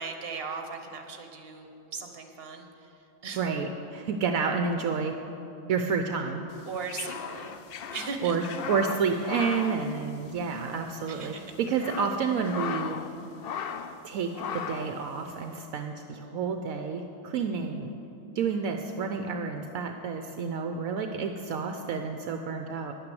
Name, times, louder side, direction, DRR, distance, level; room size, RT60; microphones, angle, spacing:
voice 1, 0.0-2.9 3.2-3.5 6.7-7.5 7.9-8.4 11.1-11.5, right 4 dB, 45° right, 5 dB, 1.2 m, -38 dB
voice 2, 3.4-5.1 5.7-6.4 8.2-13.0 14.0-17.9 18.3-22.9, right 5 dB, 70° right, 5 dB, 1.0 m, -30 dB
sound 1, 6.6-10.7 10.9-11.0 11.5-13.1 13.4-14.0 14.3-15.0, left 7 dB, 70° left, 0.5 m, -37 dB
10.5 x 8.8 x 7.7 m, 2.9 s
omnidirectional pair, 1.6 m